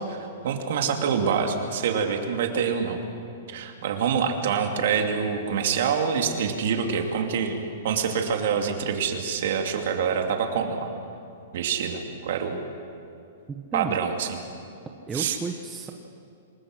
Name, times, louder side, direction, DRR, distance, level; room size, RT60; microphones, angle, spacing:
voice 1, 0.1-3.0 3.5-7.6 7.8-10.9 11.5-12.6 13.7-14.4 15.1-15.4, right 6 dB, 50° right, 3 dB, 2.7 m, -26 dB
voice 2, 13.5-14.0 15.1-15.9, right 4 dB, 10° right, 3 dB, 0.8 m, -32 dB
28.0 x 20.5 x 6.4 m, 2.6 s
hypercardioid pair, 175°, 0 cm